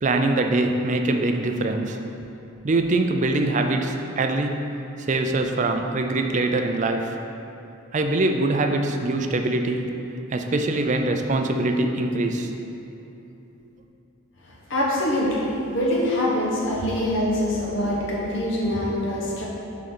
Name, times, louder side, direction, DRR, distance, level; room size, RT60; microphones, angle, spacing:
voice 1, 0.0-2.0 2.6-4.7 5.1-7.1 7.9-9.9 10.3-12.5, right 2 dB, 35° right, 5 dB, 0.4 m, -23 dB
voice 2, 14.7-19.4, left 1 dB, 60° left, -4 dB, 1.1 m, -24 dB
6.6 x 3.8 x 6.0 m, 2.9 s
head